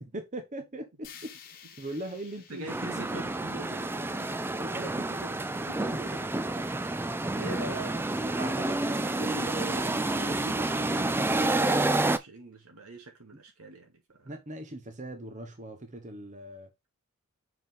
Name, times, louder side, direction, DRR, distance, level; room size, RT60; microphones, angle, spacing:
voice 1, 0.0-2.9 4.6-5.7 6.1-6.2 7.6-8.0 8.4-9.0 14.2-16.9, right 1 dB, 35° right, 1.0 m, -40 dB
sound 1, 1.0-5.1, left 8 dB, 40° left, 1.2 m, -53 dB
voice 2, 2.5-4.3 5.7-6.2 6.7-14.3, right 2 dB, 85° right, 2.2 m, -44 dB
sound 2, 2.7-12.2, right 2 dB, 10° right, 0.3 m, -29 dB
5.6 x 4.9 x 3.6 m
head